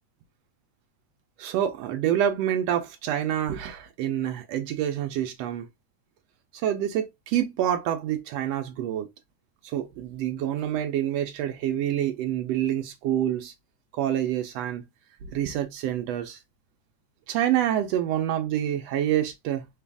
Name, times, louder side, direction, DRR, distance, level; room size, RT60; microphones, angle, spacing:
voice 1, 1.4-5.7 6.6-9.1 9.6-13.5 13.9-14.9 15.2-16.4 17.3-19.7, right 11 dB, 75° right, 1.5 m, -27 dB
4.7 x 2.5 x 3.4 m
omnidirectional pair, 3.5 m